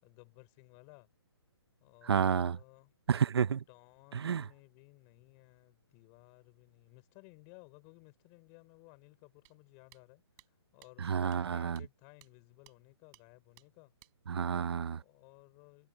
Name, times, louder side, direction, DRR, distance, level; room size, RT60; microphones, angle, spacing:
voice 1, 0.0-1.1 1.8-3.0 3.7-10.2 10.7-13.9 15.0-15.9, left 33 dB, 25° left, 4.4 m, -58 dB
voice 2, 2.1-2.6 3.1-3.6 4.1-4.4 11.0-11.8 14.3-15.0, right 7 dB, 70° right, 0.6 m, -30 dB
sound 1, 9.5-9.6 9.9-10.0 10.4-10.5 10.8-10.9 11.3-11.4 11.8-11.9 12.2-12.3 12.7-12.8 13.1-13.2 13.6-13.7 14.0-14.1, right 30 dB, 25° right, 6.5 m, -59 dB
open air
hypercardioid pair, 155°, 14 cm